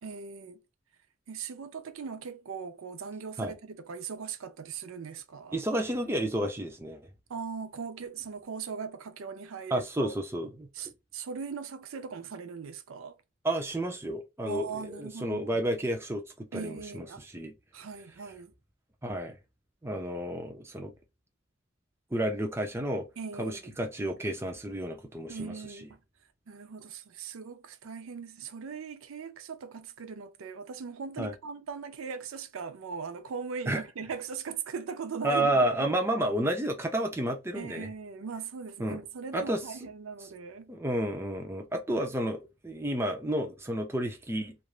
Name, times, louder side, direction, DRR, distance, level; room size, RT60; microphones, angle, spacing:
voice 1, 0.0-0.6 1.3-5.6 7.3-10.1 10.7-13.2 14.5-15.6 16.5-17.2 17.7-18.5 23.2-23.8 25.3-25.9 26.5-35.9 37.5-40.7, right 5 dB, 85° right, 0.5 m, -39 dB
voice 2, 5.5-7.0 9.7-10.7 13.4-17.5 19.0-19.4 19.8-20.9 22.1-23.1 23.4-25.5 31.2-31.3 33.7-33.8 35.2-37.9 38.8-39.0 39.3-39.6 40.7-44.6, right 1 dB, 10° right, 0.5 m, -31 dB
3.1 x 2.5 x 2.3 m
head